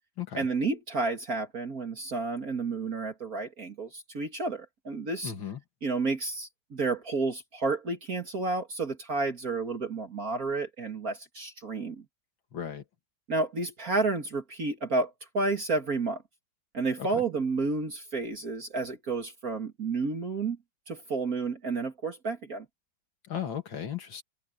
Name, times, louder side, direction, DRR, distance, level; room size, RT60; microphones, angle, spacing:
voice 1, 0.3-5.3 5.8-12.0 13.3-16.2 16.7-20.6 20.9-22.7, right 3 dB, 45° right, 2.5 m, -31 dB
voice 2, 5.2-5.6 12.5-12.8 17.1-17.2 23.3-24.2, left 9 dB, 70° left, 2.8 m, -35 dB
omnidirectional pair, 2.2 m